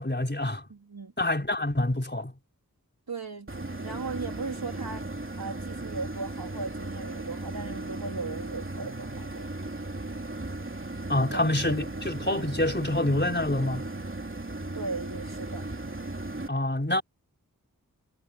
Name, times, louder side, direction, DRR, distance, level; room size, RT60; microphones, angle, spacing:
voice 1, 0.0-0.6 1.2-2.3 11.1-13.9 16.5-17.0, left 1 dB, 30° left, 4.5 m, -27 dB
voice 2, 0.7-1.1 3.1-5.1 5.4-9.5 11.3-11.8 14.7-15.7, right 4 dB, 85° right, 3.5 m, -37 dB
sound 1, 3.5-16.5, right 2 dB, 35° right, 3.0 m, -36 dB
wide cardioid pair, 50°, 36 cm